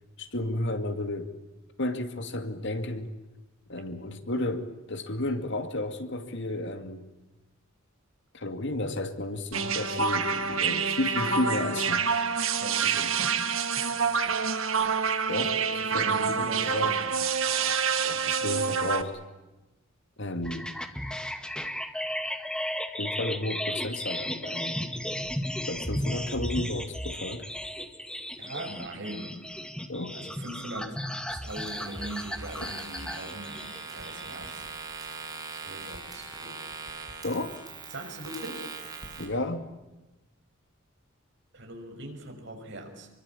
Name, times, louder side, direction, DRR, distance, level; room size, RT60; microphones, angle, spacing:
voice 1, 0.2-1.3 1.8-3.1 3.7-7.1 8.3-12.2 12.8-13.1 15.3-15.6 15.9-17.0 18.0-19.2 20.2-20.7 23.0-24.8 25.7-27.5 29.9-30.2 37.2-37.6 39.2-39.6, left 1 dB, 60° left, 7 dB, 2.5 m, -32 dB
sound 1, 9.5-19.0, right 6 dB, 80° right, 2.0 m, -27 dB
voice 2, 12.6-13.9 14.2-14.4 15.6-17.1 17.6-17.8 28.4-29.4 30.1-31.0 31.3-34.7 35.5-36.6 37.9-38.7 41.5-43.1, right 1 dB, 60° right, 4 dB, 6.4 m, -41 dB
sound 2, 20.4-34.5, left 1 dB, 5° left, 2.0 m, -35 dB
sound 3, 31.5-39.3, right 4 dB, 20° right, 7.3 m, -41 dB
26.5 x 23.5 x 8.6 m, 1.0 s
head